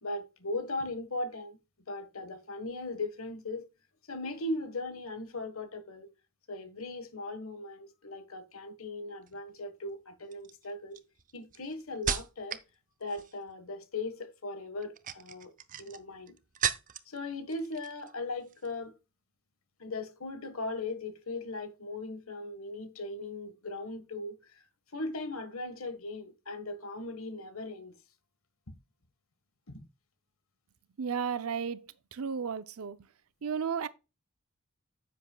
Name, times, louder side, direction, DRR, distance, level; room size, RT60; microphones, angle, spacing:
voice 1, 0.0-1.6 1.9-3.7 4.1-6.1 6.5-11.0 11.3-12.6 13.0-15.5 15.8-16.4 17.1-18.9 19.8-24.6 24.9-28.0 29.7-29.8, left 2 dB, 75° left, 1.5 m, -38 dB
sound 1, 9.2-9.6 10.3-12.7 13.0-13.5 14.8-17.2 17.5-18.1 18.4-18.7, right 8 dB, 40° right, 0.6 m, -37 dB
voice 2, 31.0-33.0 33.4-33.9, right 6 dB, 85° right, 0.6 m, -33 dB
9.9 x 7.9 x 2.3 m
head